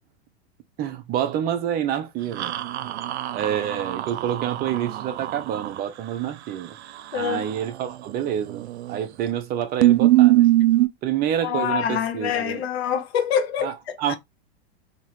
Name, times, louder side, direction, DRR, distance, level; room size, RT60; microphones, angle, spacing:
voice 1, 0.8-2.5 2.8-2.9 3.3-6.7 7.1-10.5 11.0-12.6 13.6-13.7 14.0-14.1, right 10 dB, 30° right, 0.6 m, -27 dB
sound 1, 2.4-5.8 8.5-9.0 9.3-9.4 9.8-10.9, right 16 dB, 75° right, 0.6 m, -21 dB
voice 2, 7.1-7.4 11.4-14.2, left 8 dB, 70° left, 1.1 m, -26 dB
4.0 x 2.9 x 2.9 m
hypercardioid pair, 120°, 33 cm